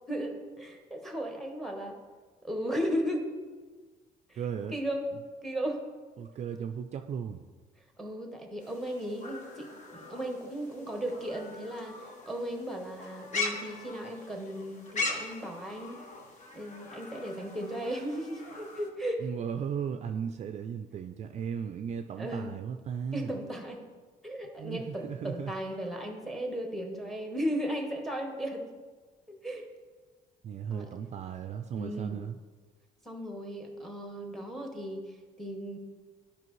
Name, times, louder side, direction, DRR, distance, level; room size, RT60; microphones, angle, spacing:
voice 1, 0.0-2.0 2.4-3.3 4.3-4.4 4.7-5.0 5.4-5.8 8.0-16.0 16.5-19.3 22.2-22.6 23.1-23.9 24.2-28.7 29.3-29.7 30.7-30.9 31.8-32.2 33.0-35.0 35.4-35.8, equal, ahead, 3 dB, 1.2 m, -36 dB
voice 2, 4.4-4.8 6.2-7.4 19.2-23.4 24.6-25.5 30.4-32.4, right 7 dB, 40° right, 7 dB, 0.4 m, -36 dB
sound 1, 8.6-18.9, left 3 dB, 45° left, 1.2 m, -40 dB
11.0 x 5.1 x 3.2 m, 1.4 s
cardioid pair, 110°, 17 cm